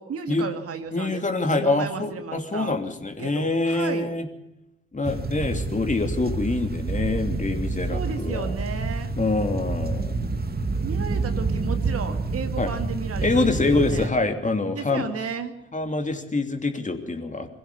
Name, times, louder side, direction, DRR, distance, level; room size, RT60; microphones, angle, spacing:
voice 1, 0.0-1.2 1.6-2.8 3.2-4.1 7.9-9.1 10.8-14.1 14.7-15.6, right 6 dB, 50° right, 7 dB, 2.1 m, -34 dB
voice 2, 0.9-4.3 4.9-8.5 9.2-10.1 12.6-12.7 13.2-15.0 15.7-17.6, left 3 dB, 25° left, 5 dB, 3.0 m, -25 dB
sound 1, 5.0-14.1, right 3 dB, 30° right, 2.3 m, -28 dB
24.0 x 15.5 x 6.9 m, 0.84 s
figure-of-eight pair, 40°, 29 cm